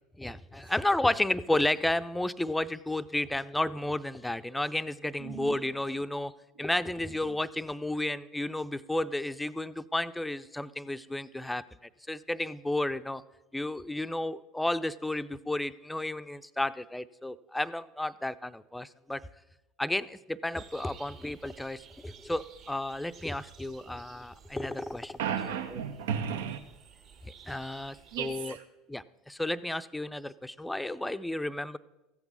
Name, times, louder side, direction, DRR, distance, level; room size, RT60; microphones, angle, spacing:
voice 1, 0.2-6.3 6.6-11.6 12.1-13.2 13.5-19.2 19.8-25.2 27.2-28.5 28.9-31.8, left 1 dB, 5° left, 14 dB, 0.5 m, -32 dB
voice 2, 5.2-5.6 6.6-6.7 7.3-7.4 25.2-26.6 28.1-28.7, right 8 dB, 65° right, 9 dB, 0.7 m, -34 dB
sound 1, 20.5-28.4, right 7 dB, 50° right, 1.8 m, -55 dB
15.0 x 8.0 x 7.1 m, 1.0 s
figure-of-eight pair, 70°, 0 cm